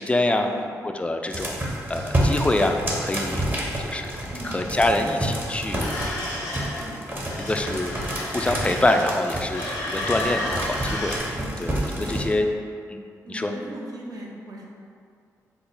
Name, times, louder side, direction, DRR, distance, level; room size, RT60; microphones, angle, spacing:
voice 1, 0.0-0.5 0.8-3.4 3.8-5.8 6.2-6.5 7.5-7.9 8.2-11.2 11.6-12.5 12.9-13.0 13.3-13.5, left 2 dB, 15° left, 5 dB, 0.3 m, -25 dB
sound 1, 1.3-12.3, right 1 dB, 30° right, 0.8 m, -29 dB
sound 2, 5.8-6.8 7.2-9.2 9.5-11.2, left 1 dB, 85° left, 0.8 m, -32 dB
voice 2, 11.3-12.1 13.2-14.7, right 1 dB, 60° right, -2 dB, 0.7 m, -38 dB
3.5 x 2.0 x 3.9 m, 2.3 s
supercardioid pair, 50°, 7 cm